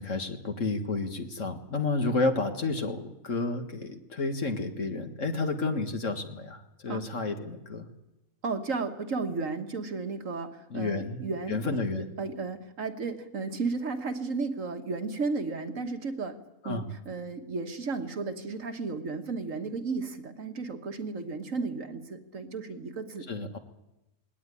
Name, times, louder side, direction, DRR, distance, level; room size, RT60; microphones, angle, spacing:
voice 1, 0.0-7.9 10.7-12.1 16.6-16.9 23.3-23.6, left 3 dB, 50° left, 6 dB, 2.0 m, -31 dB
voice 2, 8.4-16.4 16.6-23.3, right 4 dB, 55° right, 7 dB, 1.7 m, -34 dB
20.0 x 18.0 x 9.9 m, 0.93 s
omnidirectional pair, 1.7 m